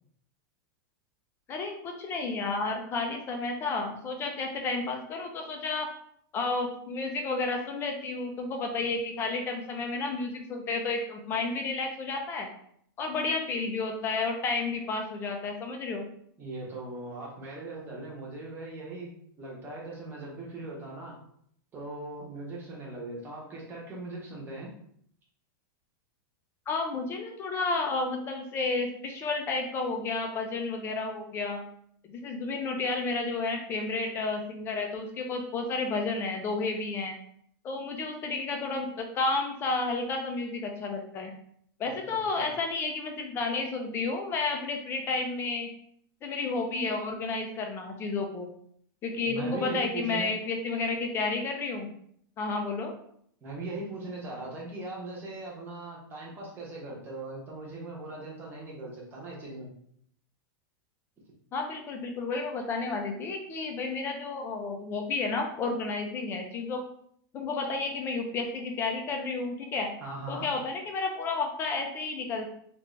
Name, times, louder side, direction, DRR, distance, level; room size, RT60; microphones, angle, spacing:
voice 1, 1.5-5.9 6.3-12.5 13.0-16.1 26.7-31.6 32.0-37.2 37.6-41.3 41.8-45.7 46.2-48.5 49.0-51.9 52.4-52.9 61.5-66.8 67.3-69.9 70.3-72.5, left 3 dB, 20° left, 3 dB, 0.5 m, -31 dB
voice 2, 16.4-19.1 19.4-21.2 21.7-24.7 42.1-42.5 49.2-50.3 53.4-59.7 70.0-70.5, right 2 dB, 20° right, -4 dB, 1.0 m, -39 dB
3.3 x 2.5 x 3.2 m, 0.66 s
supercardioid pair, 160°, 12 cm